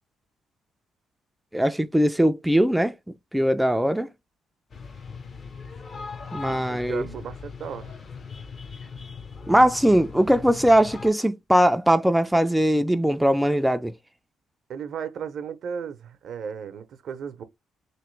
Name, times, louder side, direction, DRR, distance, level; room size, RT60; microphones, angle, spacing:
voice 1, 1.5-2.9 3.3-4.1 6.3-7.0 9.5-13.9, equal, 5° right, 0.3 m, -20 dB
sound 1, 4.7-11.1, left 5 dB, 45° left, 0.6 m, -39 dB
voice 2, 6.5-8.0 14.7-17.4, right 7 dB, 65° right, 0.6 m, -35 dB
3.0 x 2.9 x 3.1 m
cardioid pair, 90°, 0 cm